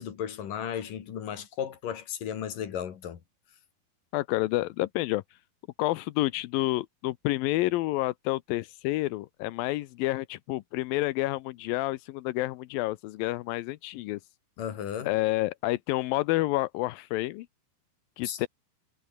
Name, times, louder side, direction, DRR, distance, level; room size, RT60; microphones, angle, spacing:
voice 1, 0.0-3.2 14.6-15.1 18.2-18.4, left 9 dB, 60° left, 3.9 m, -35 dB
voice 2, 4.1-5.4 5.8-14.2 15.1-17.5 18.2-18.5, left 18 dB, 75° left, 2.4 m, -29 dB
omnidirectional pair, 4.4 m